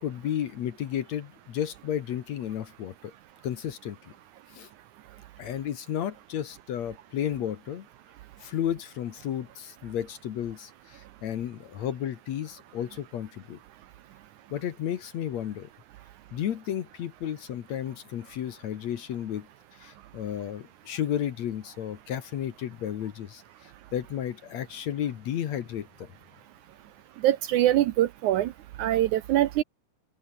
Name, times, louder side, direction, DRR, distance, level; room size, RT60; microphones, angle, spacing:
voice 1, 0.0-3.1 3.4-4.0 4.5-4.7 5.4-7.9 8.4-13.6 14.5-15.7 16.3-19.5 19.8-26.1, left 10 dB, 60° left, 2.2 m, -33 dB
voice 2, 27.2-28.5 28.8-29.6, right 13 dB, 75° right, 2.0 m, -23 dB
open air
omnidirectional pair, 4.1 m